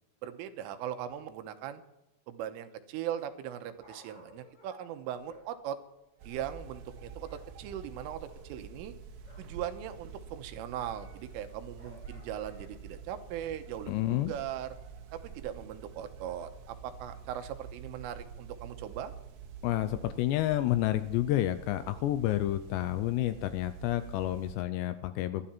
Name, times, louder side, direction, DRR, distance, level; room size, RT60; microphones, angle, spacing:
voice 1, 0.2-1.8 2.3-5.8 6.3-8.9 9.4-14.8 15.1-19.1, right 10 dB, 85° right, 8 dB, 3.6 m, -39 dB
Dog, 3.4-7.5 7.7-9.6 10.0-12.9 13.5-13.6, equal, 15° left, 5.2 m, -58 dB
sound 1, 6.2-24.5, right 6 dB, 65° right, 3.7 m, -48 dB
voice 2, 13.9-14.3 19.6-25.5, left 14 dB, 85° left, 11 dB, 2.4 m, -30 dB
19.5 x 12.5 x 4.4 m, 0.91 s
omnidirectional pair, 5.8 m